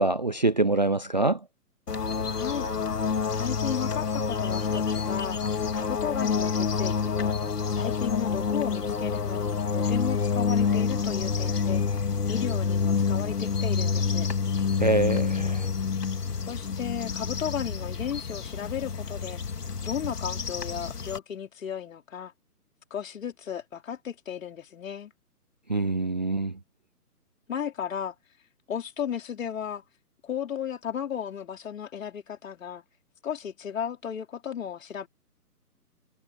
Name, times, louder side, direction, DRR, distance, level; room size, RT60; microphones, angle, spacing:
voice 1, 0.0-1.4 14.8-15.6 25.7-26.5, right 2 dB, 30° right, 0.4 m, -24 dB
sound 1, 1.9-21.2, left 5 dB, 75° left, 2.8 m, -28 dB
voice 2, 2.3-2.7 3.3-5.4 5.7-7.4 7.7-11.8 12.3-14.3 16.5-19.4 19.8-22.3 22.9-25.1 27.5-28.1 28.7-29.8 30.2-32.8 33.2-35.1, left 8 dB, 55° left, 4.9 m, -34 dB
figure-of-eight pair, 145°, 47 cm